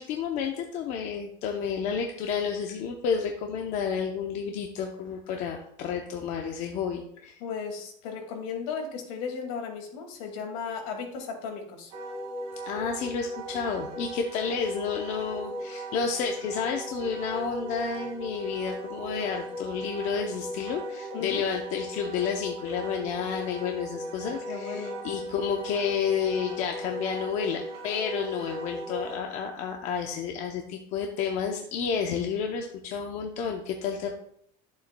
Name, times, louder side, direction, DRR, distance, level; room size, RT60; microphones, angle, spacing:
voice 1, 0.0-7.4 12.6-34.2, left 6 dB, 40° left, 3 dB, 0.7 m, -31 dB
voice 2, 7.4-11.9 21.1-21.4 24.5-25.0, left 6 dB, 65° left, 2 dB, 2.1 m, -35 dB
Wind instrument woodwind instrument, 11.9-29.2, right 1 dB, 35° right, 2.4 m, -38 dB
11.0 x 7.1 x 2.2 m, 0.68 s
cardioid pair, 180°, 18 cm